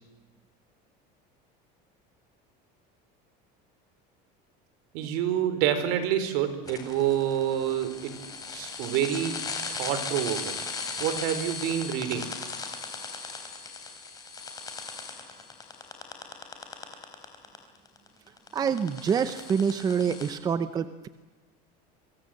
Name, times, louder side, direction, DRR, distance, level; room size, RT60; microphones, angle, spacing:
voice 1, 4.9-8.1 8.5-9.4 9.7-10.6 11.0-12.2, right 10 dB, 65° right, 10 dB, 4.5 m, -27 dB
sound 1, 6.7-17.6 17.9-20.3, left 4 dB, 20° left, 4.1 m, -37 dB
voice 2, 18.5-21.1, right 7 dB, 20° right, 11 dB, 0.8 m, -26 dB
28.5 x 24.5 x 7.9 m, 1.2 s
cardioid pair, 175°, 20 cm